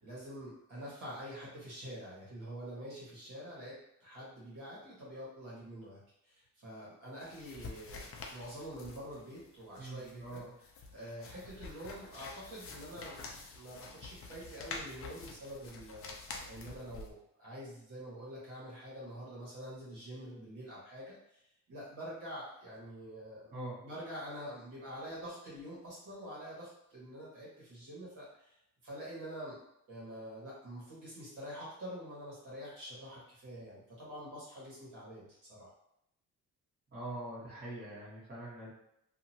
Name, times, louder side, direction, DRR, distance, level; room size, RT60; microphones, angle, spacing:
voice 1, 0.0-10.4 10.9-13.2 13.5-16.2 16.4-21.4 21.7-23.5 23.8-28.6 28.8-29.6 29.9-35.7, equal, 65° right, -7 dB, 1.5 m, -46 dB
sound 1, 7.2-17.1, left 4 dB, 40° left, 0.5 m, -48 dB
voice 2, 9.8-10.5 23.5-23.8 36.9-38.7, right 1 dB, 30° right, -10 dB, 1.4 m, -43 dB
2.8 x 2.6 x 2.8 m, 0.77 s
cardioid pair, 145°, 34 cm